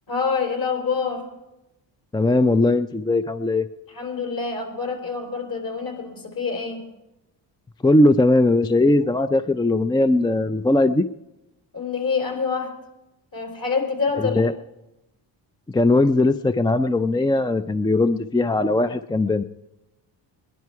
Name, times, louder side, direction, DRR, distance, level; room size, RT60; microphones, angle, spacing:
voice 1, 0.1-1.3 3.9-6.9 11.7-12.8 13.3-14.5, left 5 dB, 45° left, 4 dB, 3.7 m, -26 dB
voice 2, 2.1-3.7 7.8-11.1 14.4-14.5 15.7-19.4, left 2 dB, 10° left, 11 dB, 0.4 m, -19 dB
19.5 x 11.0 x 4.7 m, 0.95 s
cardioid pair, 75°, 46 cm